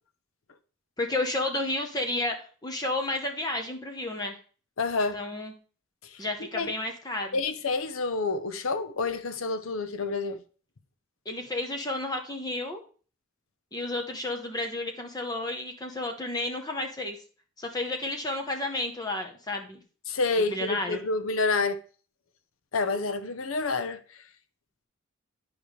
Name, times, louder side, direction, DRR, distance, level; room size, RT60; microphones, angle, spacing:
voice 1, 1.0-2.4 2.6-4.4 5.1-5.5 6.2-7.4 11.3-12.8 13.7-17.2 17.6-19.8 20.5-21.0, left 2 dB, 20° left, 1.0 m, -31 dB
voice 2, 4.8-5.2 6.0-6.2 6.5-6.7 7.3-10.4 20.1-21.8 22.7-24.0, left 3 dB, 85° left, 0.8 m, -28 dB
11.0 x 5.1 x 3.2 m
head